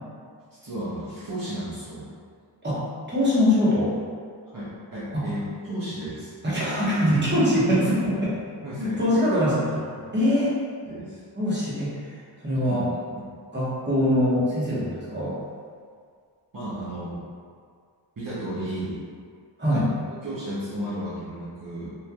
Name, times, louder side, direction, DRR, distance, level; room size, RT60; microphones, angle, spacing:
voice 1, 0.6-2.1 4.5-6.3 8.1-8.2 8.6-9.0 10.9-11.2 12.6-12.8 13.2-13.3 16.5-17.2 18.2-19.0 19.7-19.8 20.2-21.9, right 1 dB, 45° right, -11 dB, 0.8 m, -33 dB
voice 2, 2.6-3.9 5.1-5.3 6.4-8.3 8.8-9.8 10.1-10.5 11.4-11.9 12.4-12.9 13.5-15.4 19.6-19.9, left 1 dB, 25° right, -9 dB, 1.1 m, -23 dB
3.1 x 2.6 x 2.3 m, 2.1 s
wide cardioid pair, 50°, 45 cm